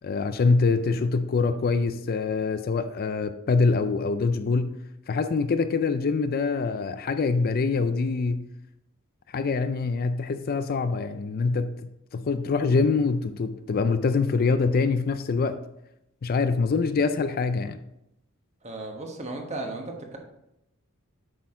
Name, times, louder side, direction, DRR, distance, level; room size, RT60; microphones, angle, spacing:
voice 1, 0.0-4.8 5.1-8.5 9.3-15.6 16.2-17.8, left 4 dB, 45° left, 0.4 m, -25 dB
voice 2, 18.6-20.2, right 2 dB, 30° right, 1.2 m, -35 dB
8.3 x 6.2 x 3.7 m
head